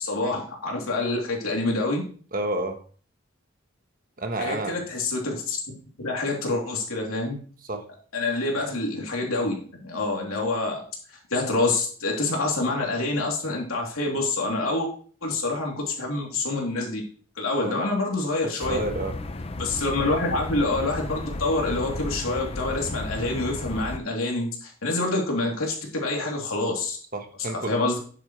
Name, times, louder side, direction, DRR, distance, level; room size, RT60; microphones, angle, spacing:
voice 1, 0.0-2.0 4.4-7.4 8.1-10.8 11.1-14.9 15.2-17.0 17.4-18.8 19.6-27.0 27.5-28.0, left 2 dB, 85° left, 0 dB, 3.1 m, -27 dB
voice 2, 2.3-2.8 4.2-4.8 7.7-7.8 17.6-17.8 18.4-19.2 27.1-27.8, right 1 dB, 40° right, 6 dB, 1.2 m, -30 dB
sound 1, 18.6-24.0, left 2 dB, 30° left, 0.6 m, -34 dB
10.0 x 8.4 x 3.2 m, 0.44 s
head